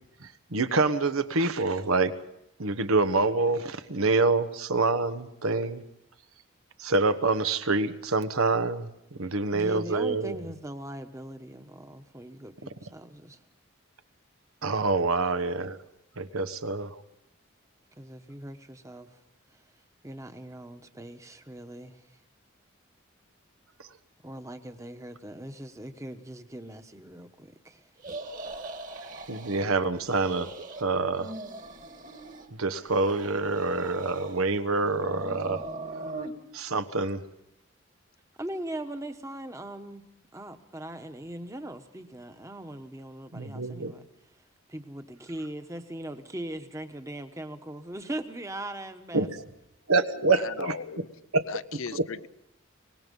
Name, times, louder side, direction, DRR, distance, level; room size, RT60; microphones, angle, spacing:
voice 1, 0.2-2.1 2.6-5.8 6.8-8.9 9.2-10.4 14.6-15.8 16.2-17.0 29.3-31.3 32.6-35.6 36.5-37.2 43.3-43.9 49.1-49.3 49.9-51.0 51.3-51.5 51.9-52.1, right 3 dB, 90° right, 9 dB, 1.3 m, -26 dB
voice 2, 9.5-13.4 18.0-19.1 20.0-22.0 24.2-27.8 38.4-40.0 40.3-44.1 44.7-49.3, right 1 dB, 15° right, 8 dB, 1.2 m, -40 dB
sound 1, 28.0-29.7 30.0-30.8 31.1-32.5 32.8-34.4 34.8-36.3, right 2 dB, 40° right, 2.0 m, -40 dB
voice 3, 50.2-51.1 51.5-52.3, left 5 dB, 75° left, 14 dB, 0.7 m, -37 dB
24.0 x 20.0 x 5.4 m, 0.83 s
head